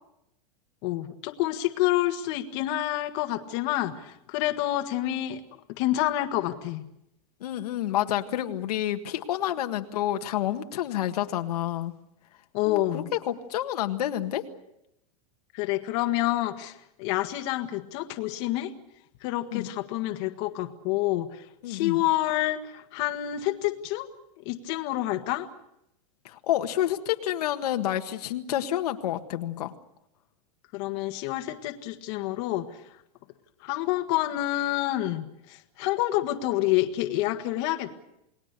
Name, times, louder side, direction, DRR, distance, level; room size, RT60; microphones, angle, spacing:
voice 1, 0.8-6.8 12.5-13.1 15.5-18.7 19.2-21.3 21.7-24.1 24.4-25.5 30.7-32.6 33.6-37.9, left 15 dB, 45° left, 6 dB, 1.7 m, -28 dB
voice 2, 7.4-11.9 12.7-14.4 19.5-19.7 21.6-22.0 26.2-29.7, left 12 dB, 80° left, 6 dB, 1.7 m, -29 dB
29.0 x 19.5 x 6.8 m, 0.84 s
supercardioid pair, 165°, 20 cm